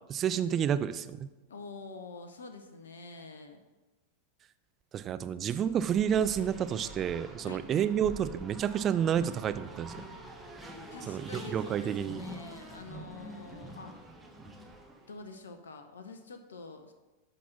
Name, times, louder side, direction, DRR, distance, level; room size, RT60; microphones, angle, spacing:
voice 1, 0.1-1.3 4.9-10.0 11.1-12.2, right 9 dB, 30° right, 12 dB, 0.5 m, -30 dB
voice 2, 1.5-3.6 5.0-5.1 7.4-7.6 10.9-14.1 15.1-16.9, left 3 dB, 70° left, 7 dB, 0.8 m, -46 dB
Race car auto racing, 5.6-15.2, right 1 dB, 5° right, 1.4 m, -46 dB
11.5 x 4.1 x 5.9 m, 1.1 s
figure-of-eight pair, 90°, 0 cm